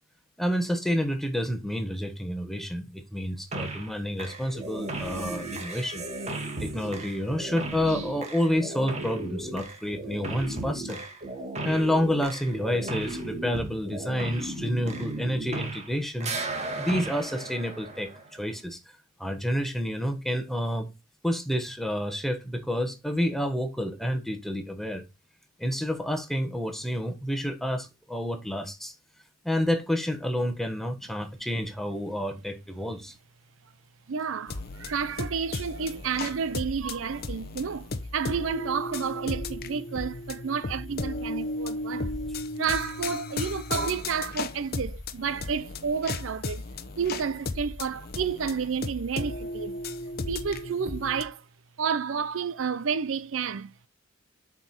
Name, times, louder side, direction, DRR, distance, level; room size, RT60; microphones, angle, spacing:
voice 1, 0.4-6.0 6.6-11.0 11.6-16.3 16.8-18.8 19.2-20.9 21.2-25.0 25.6-28.9 29.4-33.1, equal, ahead, 1.3 m, -29 dB
sound 1, 3.5-3.9 4.2-15.9 16.2-18.4, right 2 dB, 35° right, 1.8 m, -35 dB
voice 2, 34.1-42.1 42.6-46.6 47.0-49.8 50.3-51.4 51.8-53.9, right 6 dB, 70° right, 0.5 m, -30 dB
sound 2, 34.5-51.2, left 2 dB, 50° left, 0.8 m, -35 dB
7.8 x 5.0 x 4.3 m
head